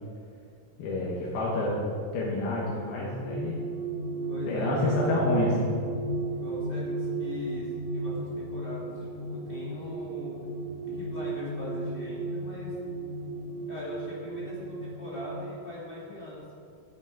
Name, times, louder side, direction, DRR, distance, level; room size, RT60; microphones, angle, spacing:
voice 1, 0.8-1.8 2.1-3.6 4.4-5.7, left 1 dB, 80° left, -5 dB, 3.2 m, -28 dB
sound 1, 2.7-15.5, right 2 dB, 65° right, 4.5 m, -34 dB
voice 2, 4.3-5.1 6.3-10.4 10.9-12.8 13.7-16.5, left 1 dB, 15° left, -7 dB, 2.3 m, -41 dB
9.8 x 8.6 x 4.7 m, 2.3 s
omnidirectional pair, 4.3 m